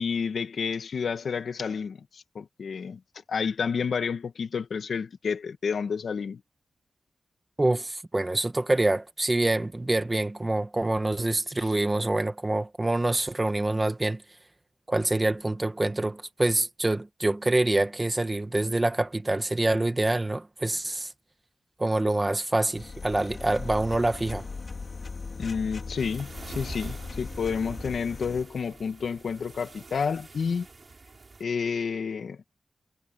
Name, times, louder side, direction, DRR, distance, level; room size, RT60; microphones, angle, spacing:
voice 1, 0.0-3.0 3.3-6.4 25.4-30.7 31.4-32.4, left 6 dB, 80° left, 2.3 m, -30 dB
voice 2, 7.6-14.2 14.9-21.1 21.8-24.5, right 2 dB, 20° right, 1.7 m, -26 dB
sound 1, 22.7-28.4, left 4 dB, 45° left, 5.4 m, -38 dB
sound 2, 26.0-31.4, right 3 dB, 35° right, 7.4 m, -45 dB
wide cardioid pair, 155°, 0 cm